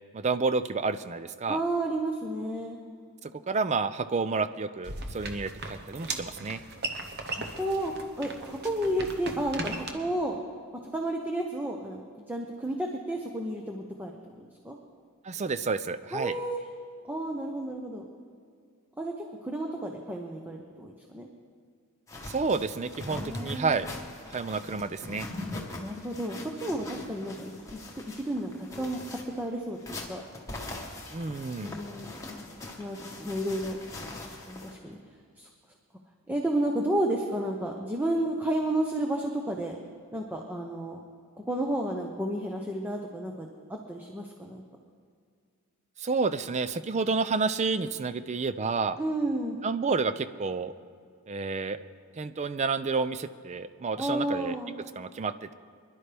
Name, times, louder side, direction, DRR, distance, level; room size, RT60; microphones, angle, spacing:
voice 1, 0.1-1.6 3.2-6.6 15.2-16.3 22.2-23.9 24.3-25.3 31.1-31.8 46.0-49.0 49.6-50.7 51.3-51.8 52.2-54.6 55.0-55.5, right 4 dB, 30° right, 13 dB, 0.4 m, -30 dB
voice 2, 1.5-2.8 7.2-10.4 10.7-12.0 12.3-14.8 16.1-16.6 17.0-18.0 19.0-19.1 19.4-21.3 23.1-23.8 25.8-27.4 27.7-27.8 28.1-30.2 31.5-35.0 35.4-35.5 36.3-39.8 40.1-41.0 41.4-44.6 49.0-49.6 54.0-54.7, right 1 dB, 10° right, 1 dB, 0.8 m, -32 dB
sound 1, 4.8-9.9, right 3 dB, 50° right, 1.1 m, -38 dB
sound 2, 22.1-34.8, left 2 dB, 15° left, 1.4 m, -42 dB
24.5 x 11.5 x 3.4 m, 2.2 s
head